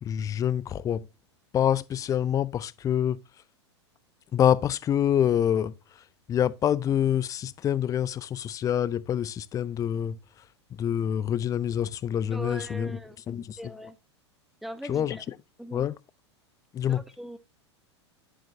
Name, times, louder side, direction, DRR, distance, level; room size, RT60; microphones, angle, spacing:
voice 1, 0.0-1.1 1.5-3.2 4.3-10.5 10.7-13.0 13.3-13.7 14.9-15.3 15.7-15.9 16.7-17.0, left 10 dB, 20° left, 0.5 m, -26 dB
voice 2, 12.3-13.2 13.6-14.0 14.6-15.2 15.6-15.9 16.9-17.4, equal, ahead, 1.1 m, -39 dB
10.0 x 7.5 x 2.6 m
hypercardioid pair, 100°, 15 cm